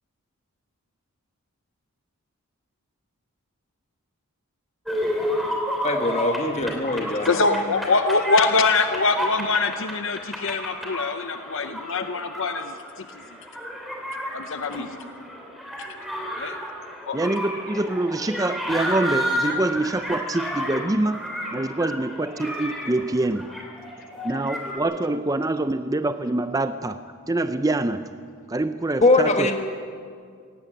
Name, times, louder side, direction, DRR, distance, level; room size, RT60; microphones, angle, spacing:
sound 1, 4.9-24.8, equal, ahead, 3.0 m, -31 dB
voice 1, 5.8-7.5 29.0-29.5, left 2 dB, 30° left, 5 dB, 1.6 m, -21 dB
voice 2, 7.3-13.2 14.3-14.9 15.8-15.9 16.4-16.6 17.1-17.2, left 3 dB, 60° left, 8 dB, 0.8 m, -24 dB
voice 3, 17.1-21.2 21.5-23.6 24.2-28.2 28.5-29.5, right 2 dB, 15° right, 11 dB, 0.5 m, -25 dB
17.0 x 17.0 x 9.1 m, 2.2 s
head